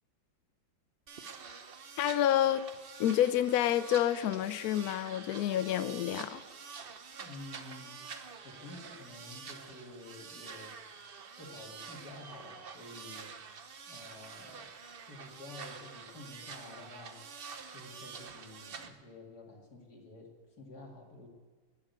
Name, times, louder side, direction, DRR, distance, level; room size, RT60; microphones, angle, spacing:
sound 1, 1.1-18.9, right 5 dB, 50° right, 0.6 m, -47 dB
voice 1, 2.0-2.7 3.0-6.4, left 11 dB, 75° left, 0.8 m, -28 dB
voice 2, 7.2-8.0 8.4-10.8 11.4-13.4 13.9-14.7 15.1-17.2 17.7-20.3 20.6-21.3, left 2 dB, 50° left, 2.9 m, -50 dB
12.0 x 10.5 x 9.4 m
omnidirectional pair, 2.1 m